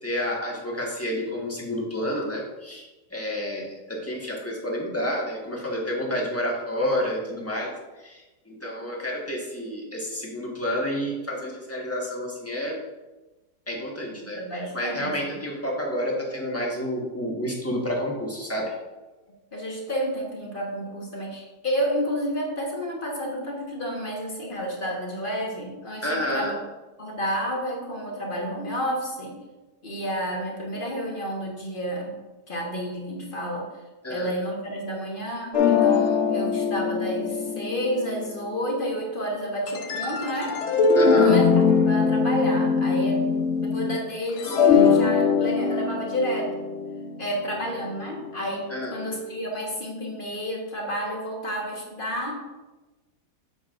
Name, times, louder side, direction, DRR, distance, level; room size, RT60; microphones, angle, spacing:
voice 1, 0.0-7.7 8.0-12.8 13.7-18.7 26.0-26.5 34.0-34.3 41.0-41.4 48.7-48.9, equal, 10° left, -3 dB, 1.2 m, -29 dB
voice 2, 14.3-15.4 19.5-26.5 27.0-29.4 29.8-32.2 32.5-33.7 34.1-40.6 41.2-41.5 41.8-43.2 43.6-46.5 47.2-52.3, equal, 35° left, -2 dB, 1.3 m, -30 dB
sound 1, 35.5-38.7 39.7-44.0 44.3-48.5, left 5 dB, 60° left, 0.8 m, -22 dB
8.1 x 6.9 x 2.5 m, 1.1 s
omnidirectional pair, 1.9 m